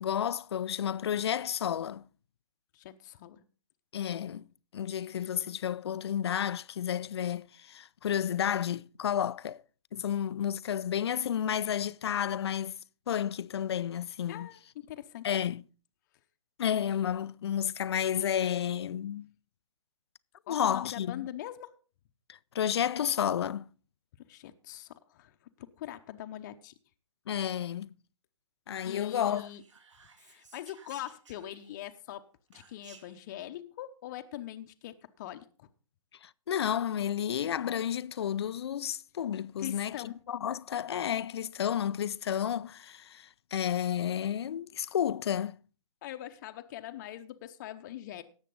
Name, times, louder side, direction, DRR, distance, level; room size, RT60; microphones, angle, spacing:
voice 1, 0.0-2.0 3.9-4.5 4.7-9.6 9.9-12.8 13.1-14.5 15.2-15.6 16.6-19.3 20.5-21.3 22.3-23.7 27.3-27.9 28.7-29.5 36.2-45.6, left 9 dB, 55° left, 0.4 m, -31 dB
voice 2, 2.7-3.4 14.3-15.4 20.5-21.7 24.2-26.7 28.8-29.6 30.2-32.2 32.5-35.7 39.6-40.2 46.0-48.2, left 12 dB, 35° left, 0.8 m, -42 dB
Whispering, 29.0-32.0 32.5-33.3, right 4 dB, 65° right, 2.5 m, -58 dB
17.5 x 7.4 x 3.9 m
figure-of-eight pair, 130°, 17 cm